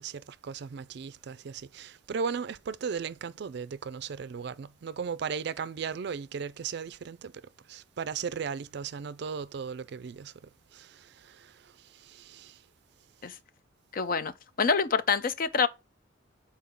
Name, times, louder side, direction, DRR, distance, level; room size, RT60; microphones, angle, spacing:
voice 1, 0.0-12.6, right 6 dB, 60° right, 0.4 m, -37 dB
voice 2, 13.9-14.3 14.6-15.7, left 5 dB, 50° left, 0.5 m, -26 dB
7.1 x 4.3 x 3.7 m
head